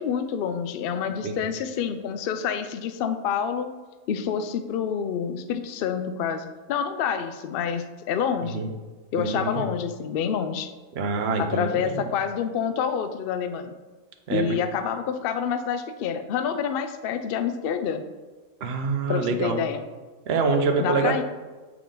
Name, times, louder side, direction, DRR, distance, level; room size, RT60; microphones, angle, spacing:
voice 1, 0.0-3.7 4.1-8.6 9.1-10.7 11.4-13.7 14.3-18.0 19.1-19.8 20.8-21.2, left 7 dB, 85° left, 9 dB, 0.5 m, -27 dB
voice 2, 9.2-9.7 10.9-12.0 14.3-14.4 18.6-19.6 20.3-21.2, right 4 dB, 55° right, 5 dB, 0.8 m, -25 dB
6.9 x 4.7 x 3.7 m, 1.3 s
omnidirectional pair, 1.5 m